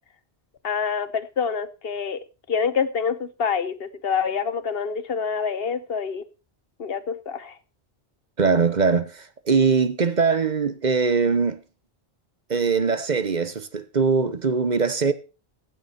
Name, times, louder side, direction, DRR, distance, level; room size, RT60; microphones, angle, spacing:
voice 1, 0.6-6.3 6.8-7.6, left 6 dB, 65° left, 1.2 m, -27 dB
voice 2, 8.4-11.6 12.5-15.1, right 5 dB, 45° right, 1.0 m, -21 dB
15.5 x 9.6 x 4.3 m
omnidirectional pair, 1.1 m